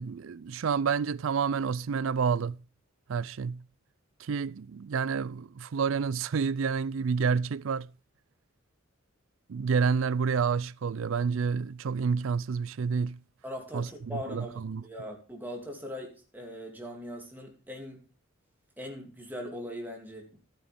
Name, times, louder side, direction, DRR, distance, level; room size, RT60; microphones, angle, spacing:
voice 1, 0.0-2.6 3.1-3.6 4.2-7.9 9.5-13.2 13.7-14.8, right 5 dB, 70° right, 0.4 m, -29 dB
voice 2, 13.4-18.1 18.8-20.4, left 1 dB, 10° right, 2.8 m, -40 dB
13.5 x 8.8 x 3.5 m
head